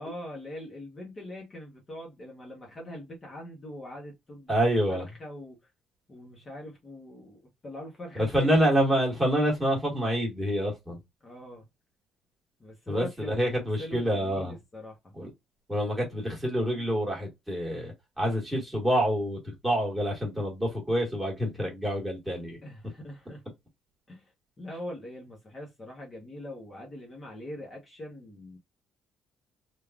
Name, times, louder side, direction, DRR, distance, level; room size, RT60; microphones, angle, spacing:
voice 1, 0.0-4.5 4.9-5.7 6.1-8.7 11.2-11.7 12.6-15.1 22.6-23.4 24.1-24.3 24.6-28.6, left 1 dB, 25° left, 0.8 m, -42 dB
voice 2, 4.5-5.0 8.1-11.0 12.9-14.5 15.1-15.3 15.7-22.6, equal, 10° right, 1.5 m, -27 dB
3.4 x 2.3 x 2.3 m
cardioid pair, 160°, 0 cm